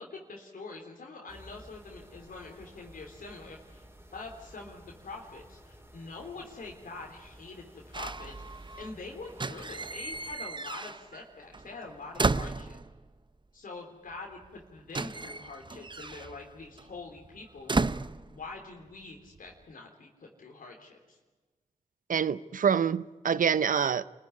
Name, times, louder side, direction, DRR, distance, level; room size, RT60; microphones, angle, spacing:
voice 1, 0.0-3.8 4.1-12.8 13.5-17.7 18.2-21.2, left 3 dB, 75° left, 3.5 m, -45 dB
sound 1, 1.3-10.4, equal, 15° right, 4.7 m, -54 dB
sound 2, 7.9-8.9 9.3-11.3 11.5-13.1 14.1-14.2 14.4-18.9 19.2-19.6, right 3 dB, 35° right, 0.8 m, -34 dB
voice 2, 22.1-24.0, right 7 dB, 70° right, 0.8 m, -26 dB
26.5 x 15.5 x 9.6 m
cardioid pair, 40°, 14 cm